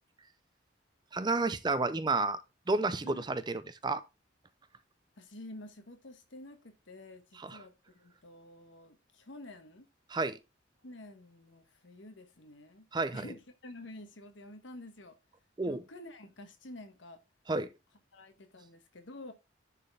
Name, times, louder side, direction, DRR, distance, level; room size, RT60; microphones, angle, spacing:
voice 1, 1.1-2.4 2.7-4.0 7.4-7.6 10.1-10.4 12.9-13.3 15.6-15.8 17.5-17.7, right 3 dB, 20° right, 0.5 m, -31 dB
voice 2, 5.2-9.9 10.8-15.2 15.6-17.2 18.1-19.3, left 1 dB, 80° left, 1.4 m, -49 dB
10.5 x 4.3 x 3.4 m
head